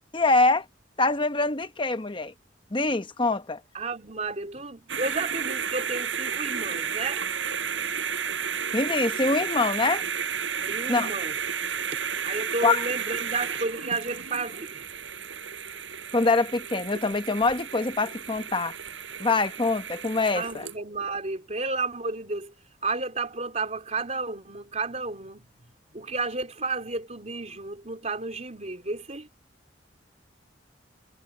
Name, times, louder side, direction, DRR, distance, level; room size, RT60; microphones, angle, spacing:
voice 1, 0.1-0.6 1.0-2.3 2.7-3.6 8.7-10.0 10.9-11.1 12.6-12.8 16.1-18.7 19.2-20.7, left 3 dB, 25° left, 1.0 m, -24 dB
voice 2, 3.7-7.3 10.7-11.3 12.2-14.9 20.3-22.5 22.8-25.4 25.9-29.3, right 3 dB, 40° right, 3.3 m, -32 dB
sound 1, 4.9-20.8, right 7 dB, 90° right, 7.3 m, -32 dB
head